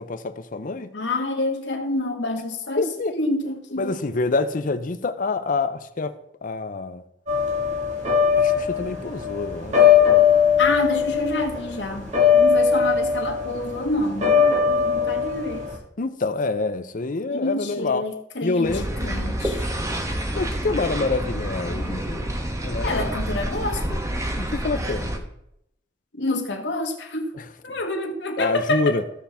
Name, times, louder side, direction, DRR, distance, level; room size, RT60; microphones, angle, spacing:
voice 1, 0.0-0.9 2.8-3.2 3.8-6.2 6.4-7.0 8.3-9.8 16.0-18.0 18.4-18.9 20.3-22.3 22.6-23.1 24.4-25.1 27.4-27.5 28.4-29.0, left 3 dB, 50° left, 0.6 m, -26 dB
voice 2, 0.9-4.0 10.6-15.7 17.3-19.7 22.8-24.0 26.1-27.3 27.6-29.0, left 2 dB, 70° left, 1.4 m, -28 dB
sound 1, 7.3-15.8, left 7 dB, 40° right, 1.9 m, -20 dB
sound 2, 18.6-25.2, right 1 dB, 20° right, 1.1 m, -28 dB
15.5 x 5.7 x 3.5 m
head